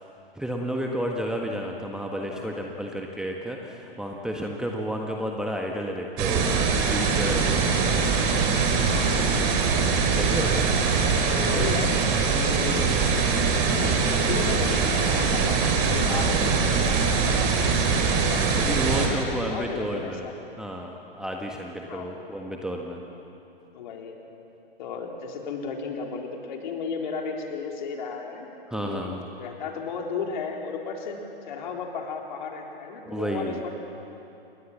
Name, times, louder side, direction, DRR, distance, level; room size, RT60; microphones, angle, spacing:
voice 1, 0.3-8.3 10.1-10.7 16.0-16.3 17.8-18.1 18.6-20.3 20.6-23.0 28.7-29.2 33.1-33.6, equal, ahead, 1 dB, 1.6 m, -32 dB
voice 2, 2.3-2.7 8.8-9.4 10.7-12.0 12.3-12.9 13.5-19.1 19.4-20.3 21.9-22.2 23.7-24.2 24.8-29.1 29.4-31.2 31.5-33.8, left 5 dB, 50° left, 1 dB, 3.8 m, -35 dB
sound 1, 6.2-19.1, right 5 dB, 35° right, 4.3 m, -23 dB
29.0 x 21.5 x 7.4 m, 2.9 s
figure-of-eight pair, 110°, 30 cm